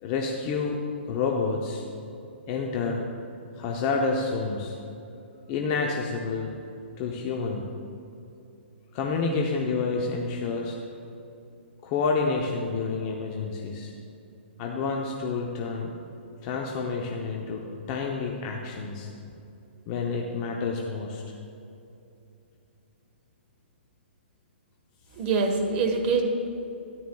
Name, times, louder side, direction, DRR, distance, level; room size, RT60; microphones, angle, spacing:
voice 1, 0.0-0.8 1.1-1.8 2.5-3.0 3.5-4.8 5.5-6.5 7.0-7.7 8.9-10.8 11.8-13.9 14.6-15.9 16.4-19.1 19.9-21.2, left 4 dB, 30° left, 0 dB, 0.7 m, -29 dB
voice 2, 25.2-26.2, right 4 dB, 30° right, 2 dB, 1.3 m, -24 dB
13.0 x 10.0 x 2.3 m, 2.7 s
hypercardioid pair, 155°, 6 cm